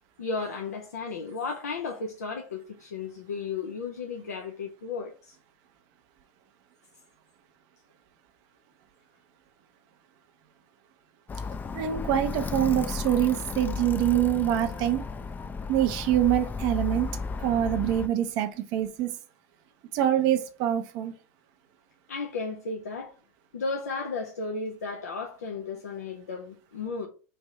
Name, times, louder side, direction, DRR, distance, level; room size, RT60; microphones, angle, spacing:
voice 1, 0.2-5.4 22.1-23.1 23.5-27.1, left 4 dB, 85° left, 0.5 m, -34 dB
Alarm, 11.3-18.1, left 4 dB, 20° left, 0.4 m, -34 dB
voice 2, 11.7-15.0 15.7-19.2 19.9-21.1, right 11 dB, 60° right, 0.6 m, -25 dB
3.2 x 2.6 x 4.3 m
hypercardioid pair, 80°, 8 cm